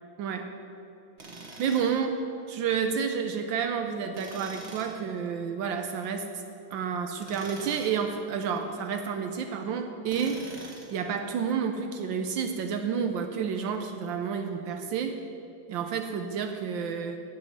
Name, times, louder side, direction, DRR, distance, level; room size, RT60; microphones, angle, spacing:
voice 1, 0.2-0.5 1.6-2.2 2.5-6.3 6.7-10.5 10.9-15.2 15.7-17.2, right 6 dB, 80° right, 5 dB, 1.4 m, -30 dB
Tools, 1.2-2.0 4.1-5.0 7.2-8.0 10.1-11.0, right 2 dB, 35° right, 1.7 m, -44 dB
11.5 x 6.3 x 9.2 m, 2.8 s
omnidirectional pair, 2.1 m